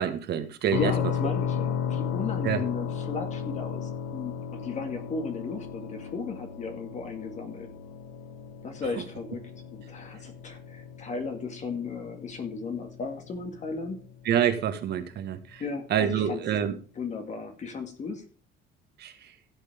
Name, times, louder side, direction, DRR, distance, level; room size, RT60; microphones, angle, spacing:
voice 1, 0.0-0.9 2.4-2.6 14.2-15.6 15.9-16.7 19.0-19.1, right 9 dB, 55° right, 9 dB, 1.6 m, -26 dB
sound 1, 0.7-14.4, left 8 dB, 80° left, 1.3 m, -35 dB
voice 2, 0.7-7.7 8.6-9.4 9.7-14.0 15.6-16.4 17.0-18.2, left 4 dB, 35° left, 6 dB, 2.0 m, -35 dB
15.5 x 8.1 x 3.6 m, 0.38 s
cardioid pair, 150°, 21 cm